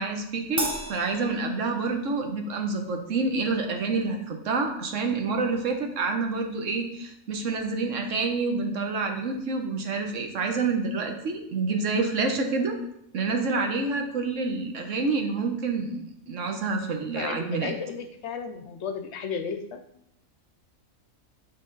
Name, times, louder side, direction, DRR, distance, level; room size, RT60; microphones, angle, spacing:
voice 1, 0.0-12.8 13.1-17.7, right 4 dB, 70° right, 4 dB, 1.2 m, -28 dB
Crash cymbal, 0.6-2.2, right 1 dB, 15° right, 0.7 m, -34 dB
voice 2, 17.0-19.8, left 6 dB, 65° left, 7 dB, 0.8 m, -34 dB
8.7 x 3.8 x 3.9 m, 0.78 s
omnidirectional pair, 1.4 m